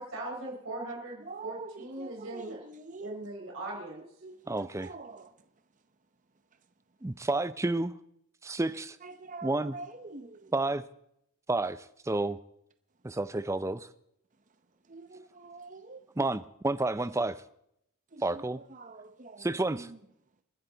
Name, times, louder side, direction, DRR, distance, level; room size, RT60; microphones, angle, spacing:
voice 1, 0.0-2.6 3.0-4.2, right 2 dB, 65° right, 4.2 m, -40 dB
voice 2, 1.2-3.1 4.2-5.5 9.0-10.5 14.9-16.1 18.1-20.0, right 3 dB, 35° right, 0.8 m, -46 dB
voice 3, 4.5-4.9 7.0-7.9 8.4-9.0 9.4-9.7 10.5-10.8 11.5-12.4 13.0-13.9 16.2-17.4 18.2-18.6 19.4-19.9, right 2 dB, 15° right, 0.5 m, -30 dB
27.5 x 10.0 x 4.0 m
head